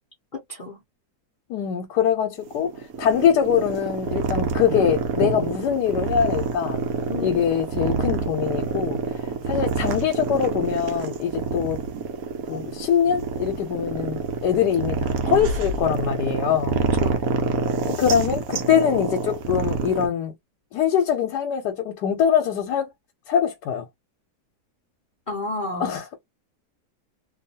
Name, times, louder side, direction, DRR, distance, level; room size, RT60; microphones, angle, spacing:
voice 1, 0.3-0.8 7.1-7.4 17.0-17.2 25.3-25.9, left 2 dB, 50° left, 0.6 m, -32 dB
voice 2, 1.5-2.7 3.0-6.8 7.2-9.0 9.5-11.8 12.5-16.8 17.9-20.3 20.7-22.9 23.3-23.8 25.8-26.2, left 8 dB, 85° left, 1.2 m, -23 dB
sound 1, 2.4-20.1, right 5 dB, 70° right, 1.0 m, -27 dB
2.7 x 2.3 x 2.7 m
omnidirectional pair, 1.7 m